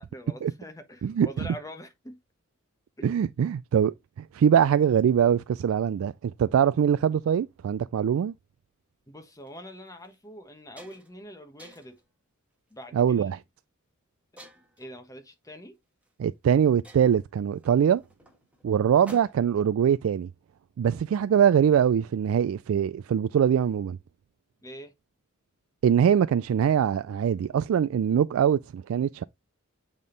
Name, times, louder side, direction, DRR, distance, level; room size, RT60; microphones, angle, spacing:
voice 1, 0.0-2.2 3.0-3.1 9.1-12.0 12.7-13.4 14.3-15.8 24.6-24.9, equal, 15° left, 1.2 m, -44 dB
voice 2, 3.0-8.3 12.9-13.4 16.2-18.0 18.6-20.3 20.8-24.0 25.8-29.2, right 8 dB, 70° right, 0.3 m, -23 dB
sound 1, 9.3-9.5 10.0-10.2 10.5-11.2 11.6-12.0 12.7-13.0 14.4-14.9 16.0-16.1 16.4-16.5 16.8-19.6, equal, 5° right, 1.4 m, -51 dB
8.5 x 3.6 x 3.8 m
head